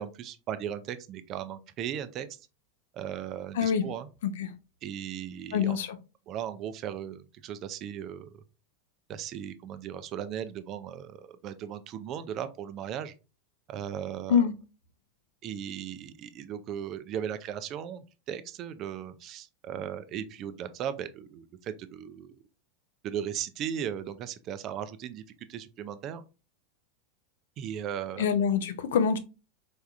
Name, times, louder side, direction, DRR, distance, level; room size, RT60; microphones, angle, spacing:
voice 1, 0.0-2.3 2.9-4.1 4.8-5.8 6.3-8.4 9.1-13.1 13.7-14.4 15.4-22.4 23.0-26.2 27.6-28.3, right 9 dB, 40° right, 0.5 m, -37 dB
voice 2, 3.6-3.9 4.2-4.5 5.5-6.0 14.3-14.5 28.2-29.2, left 7 dB, 65° left, 0.6 m, -25 dB
4.3 x 3.5 x 2.4 m
figure-of-eight pair, 85°, 0 cm